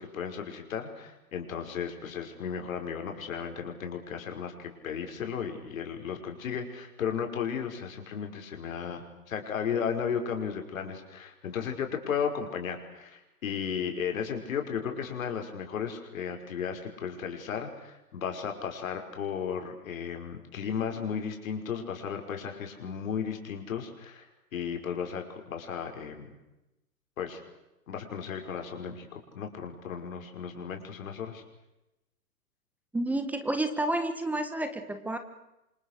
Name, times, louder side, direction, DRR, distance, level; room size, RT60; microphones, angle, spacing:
voice 1, 0.0-24.3 24.5-26.3 27.2-27.4 27.9-31.4, left 7 dB, 55° left, 4 dB, 5.7 m, -35 dB
voice 2, 32.9-35.2, right 1 dB, 5° right, 9 dB, 1.3 m, -30 dB
28.5 x 26.0 x 6.7 m, 0.93 s
hypercardioid pair, 140°, 47 cm